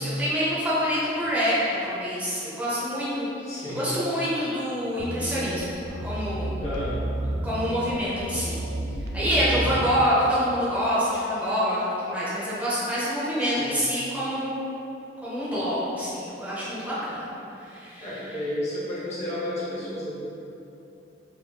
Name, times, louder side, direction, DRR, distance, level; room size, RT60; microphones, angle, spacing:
voice 1, 0.0-6.6 7.4-8.6 9.1-14.6 15.2-17.3 17.6-18.1, equal, 10° right, -11 dB, 0.6 m, -26 dB
voice 2, 3.5-3.8 6.6-7.0 9.4-9.7 13.4-13.7 18.0-20.1, left 1 dB, 40° left, -8 dB, 0.6 m, -32 dB
sound 1, 5.0-10.0, right 1 dB, 80° right, 0.3 m, -31 dB
3.3 x 2.4 x 2.2 m, 2.8 s
head